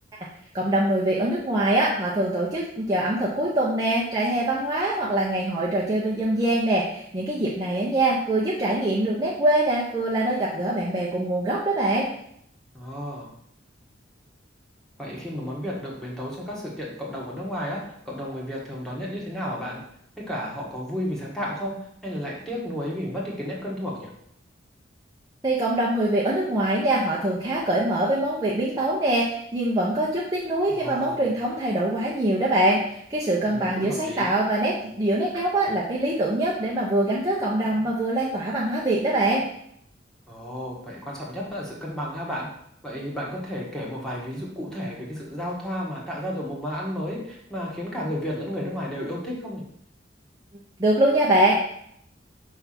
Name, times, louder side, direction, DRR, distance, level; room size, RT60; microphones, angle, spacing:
voice 1, 0.5-12.1 25.4-39.4 50.8-51.8, right 1 dB, 20° right, -6 dB, 0.8 m, -23 dB
voice 2, 12.7-13.3 15.0-19.8 20.2-21.8 22.0-24.1 30.7-31.3 33.4-34.3 40.3-42.5 42.8-49.6, equal, 5° left, -4 dB, 1.5 m, -32 dB
5.5 x 3.5 x 5.8 m, 0.71 s
head